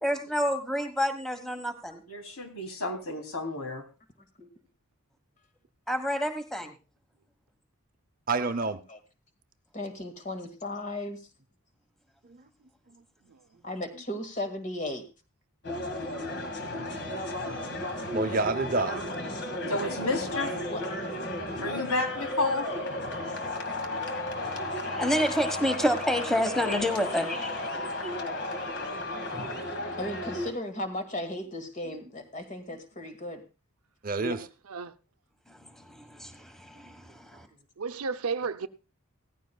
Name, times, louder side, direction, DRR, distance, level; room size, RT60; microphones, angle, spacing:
voice 1, 0.0-2.0 5.9-6.8 24.8-28.2 29.3-29.8 35.5-37.5, equal, ahead, 1.3 m, -29 dB
voice 2, 2.1-3.9 19.7-20.5 21.6-22.7 34.2-34.3, left 2 dB, 85° left, 3.1 m, -31 dB
voice 3, 8.3-8.8 12.3-12.4 18.1-19.0 21.5-21.7 24.8-24.9 29.8-29.9 34.0-34.5, right 3 dB, 40° right, 0.7 m, -29 dB
voice 4, 9.7-11.2 13.6-15.1 20.7-20.8 30.0-33.4, left 1 dB, 35° left, 2.0 m, -36 dB
sound 1, 15.6-30.5, left 1 dB, 50° left, 2.0 m, -34 dB
voice 5, 16.0-16.3 17.1-17.3 20.4-20.7 34.4-34.9 37.8-38.7, right 5 dB, 80° right, 0.7 m, -35 dB
17.0 x 14.5 x 2.3 m
head